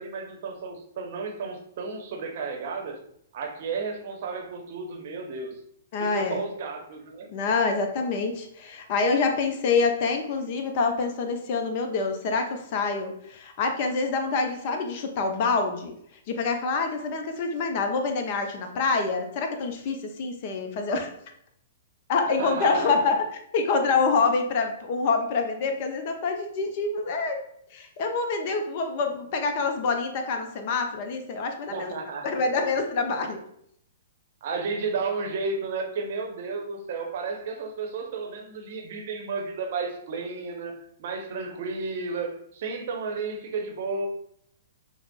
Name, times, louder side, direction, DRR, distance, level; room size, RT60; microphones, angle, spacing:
voice 1, 0.0-3.0 3.3-5.5 6.0-7.3 22.4-23.0 31.7-32.5 34.4-44.1, right 4 dB, 50° right, 3 dB, 0.7 m, -33 dB
voice 2, 5.9-6.4 7.3-16.0 16.3-21.1 22.1-23.2 23.5-27.4 27.7-31.9 32.2-33.4, left 4 dB, 45° left, 5 dB, 0.5 m, -26 dB
5.7 x 2.0 x 2.2 m, 0.71 s
figure-of-eight pair, 110°, 0 cm